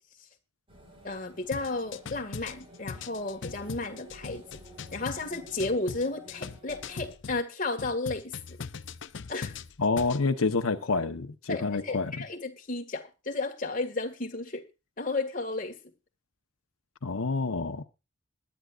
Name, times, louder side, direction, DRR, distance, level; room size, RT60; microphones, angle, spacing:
sound 1, 0.7-7.1, right 1 dB, 25° right, 5.0 m, -52 dB
voice 1, 1.0-4.6 4.9-8.6 9.3-9.6 11.5-14.7 15.0-15.8, left 3 dB, 40° left, 1.9 m, -33 dB
sound 2, 1.5-7.4 7.8-10.2, left 5 dB, 60° left, 0.6 m, -41 dB
voice 2, 9.8-12.1 17.0-17.8, left 3 dB, 85° left, 1.0 m, -28 dB
21.5 x 10.5 x 2.5 m
head